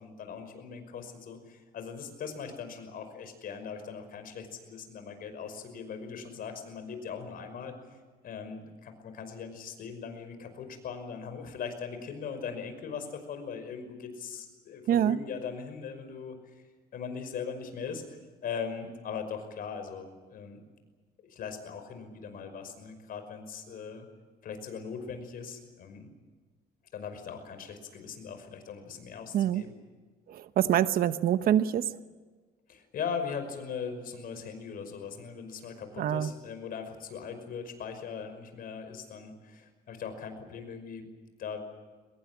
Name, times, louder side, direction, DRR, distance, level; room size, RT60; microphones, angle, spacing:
voice 1, 0.0-7.7 8.2-16.6 16.9-18.0 18.4-20.6 21.2-24.1 24.4-26.1 26.9-29.7 32.7-41.1 41.4-41.6, left 6 dB, 60° left, 8 dB, 5.6 m, -40 dB
voice 2, 14.9-15.2 29.3-29.6 30.3-31.8 36.0-36.3, right 10 dB, 60° right, 12 dB, 1.0 m, -25 dB
23.5 x 21.0 x 8.6 m, 1.4 s
cardioid pair, 110°, 17 cm